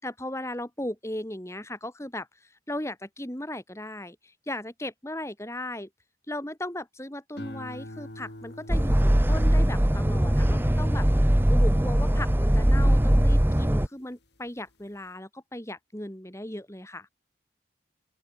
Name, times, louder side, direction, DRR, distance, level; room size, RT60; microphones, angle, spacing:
voice 1, 0.0-5.9 6.3-11.1 11.5-17.1, left 1 dB, 15° left, 2.4 m, -37 dB
sound 1, 7.4-13.9 14.4-14.8, left 1 dB, 60° left, 4.2 m, -47 dB
sound 2, 8.7-13.9, equal, 10° right, 0.8 m, -21 dB
open air
head